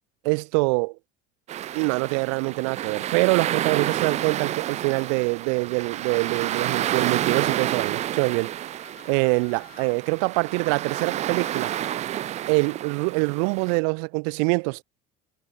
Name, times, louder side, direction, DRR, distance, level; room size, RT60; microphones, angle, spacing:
voice 1, 0.2-1.0 1.7-8.5 9.1-11.7 12.5-14.8, right 40 dB or more, 85° right, 0.4 m, -24 dB
sound 1, 1.5-13.8, right 12 dB, 40° right, 0.8 m, -30 dB
sound 2, 5.9-7.1 8.3-10.0 10.9-12.0, left 16 dB, 55° left, 3.7 m, -50 dB
cardioid pair, 145°, 18 cm